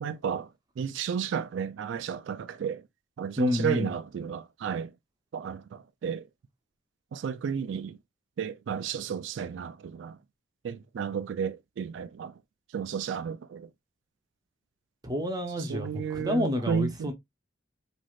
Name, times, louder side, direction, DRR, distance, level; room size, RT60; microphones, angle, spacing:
voice 1, 0.0-0.5 0.8-2.8 3.2-4.9 5.3-6.2 7.1-8.0 8.4-10.2 10.6-12.3 12.7-13.7 15.7-17.1, right 7 dB, 70° right, 0.3 m, -32 dB
voice 2, 3.4-3.9 15.0-17.1, left 1 dB, 20° right, 0.6 m, -29 dB
3.1 x 2.5 x 2.3 m
head